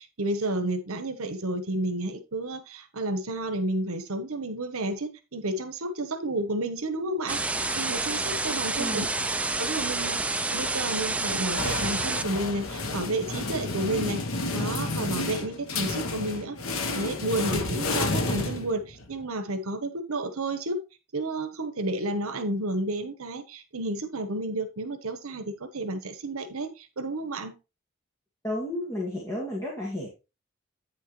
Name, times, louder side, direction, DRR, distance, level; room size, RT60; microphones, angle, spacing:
voice 1, 0.0-9.0 9.6-14.2 14.5-20.8 21.1-27.5, right 2 dB, 75° right, 9 dB, 1.1 m, -31 dB
sound 1, 7.3-12.2, right 2 dB, 5° right, 0.4 m, -28 dB
sound 2, 11.2-19.1, left 2 dB, 70° left, 1.0 m, -31 dB
voice 2, 28.4-30.1, left 1 dB, 15° left, -3 dB, 1.8 m, -32 dB
8.8 x 6.4 x 3.2 m, 0.27 s
head